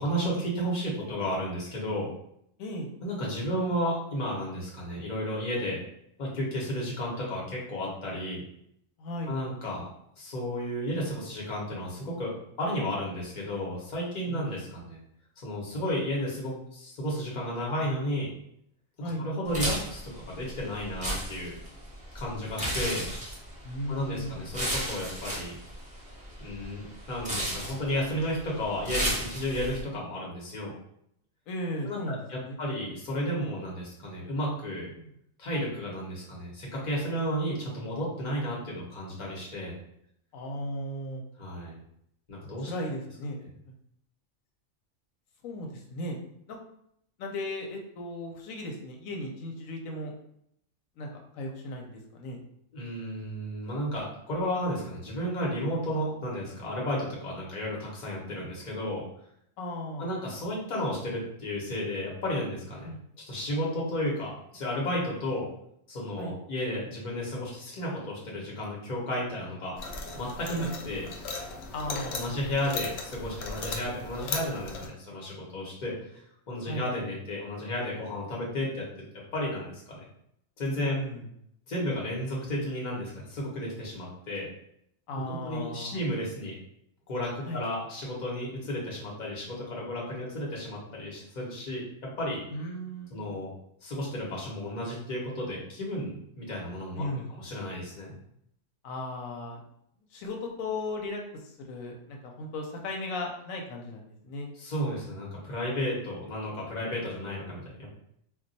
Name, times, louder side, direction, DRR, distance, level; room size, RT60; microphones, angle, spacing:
voice 1, 0.0-2.1 3.0-5.8 6.2-8.4 9.3-9.9 10.2-15.0 15.4-18.3 19.2-21.6 22.1-23.0 23.9-25.6 26.4-30.7 31.8-34.9 35.4-39.8 41.4-41.8 42.3-42.7 52.7-59.0 60.0-62.9 63.3-65.5 65.9-69.8 70.1-71.1 71.9-79.1 79.3-80.0 80.6-81.0 81.7-84.5 85.3-86.5 87.1-92.4 93.1-93.5 93.8-98.2 104.6-107.9, equal, 40° left, -4 dB, 0.9 m, -33 dB
voice 2, 9.0-9.3 14.3-14.5 19.0-19.3 23.6-24.4 31.5-32.6 35.0-35.1 40.3-41.2 42.7-43.4 43.7-43.8 45.4-46.2 46.5-46.6 47.2-50.1 51.0-52.4 59.6-60.1 62.8-63.0 66.2-66.4 70.5-70.7 71.7-72.4 76.7-76.9 80.8-81.3 85.1-86.0 87.5-87.6 92.5-93.4 97.0-97.3 98.8-99.6 100.1-101.2 101.6-104.5, left 1 dB, 90° left, 1 dB, 1.0 m, -36 dB
sound 1, 19.5-29.8, right 1 dB, 10° right, 0.6 m, -35 dB
sound 2, 69.8-74.9, left 4 dB, 65° left, 0.7 m, -37 dB
2.3 x 2.3 x 3.9 m, 0.73 s
omnidirectional pair, 1.4 m